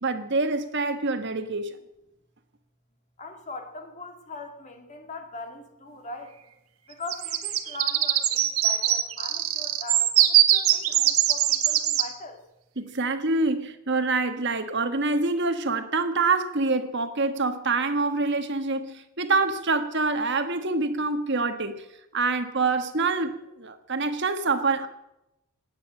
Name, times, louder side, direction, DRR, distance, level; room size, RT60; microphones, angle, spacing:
voice 1, 0.0-1.8 12.8-21.8 22.1-24.9, right 3 dB, 55° right, 1.5 m, -26 dB
voice 2, 3.2-6.4 6.9-12.4, left 2 dB, 35° left, 2.1 m, -41 dB
sound 1, 7.1-12.1, right 12 dB, 85° right, 1.3 m, -22 dB
20.0 x 9.3 x 7.7 m
head